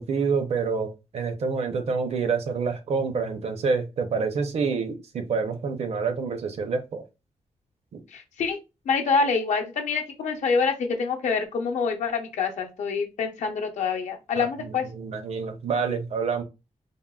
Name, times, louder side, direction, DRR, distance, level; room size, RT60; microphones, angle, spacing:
voice 1, 0.0-7.0 7.9-8.0 14.4-16.4, right 5 dB, 60° right, 7 dB, 0.5 m, -27 dB
voice 2, 8.1-8.6 8.9-14.9, left 5 dB, 70° left, 3 dB, 0.6 m, -26 dB
3.6 x 2.0 x 2.2 m, 0.26 s
wide cardioid pair, 145°, 12 cm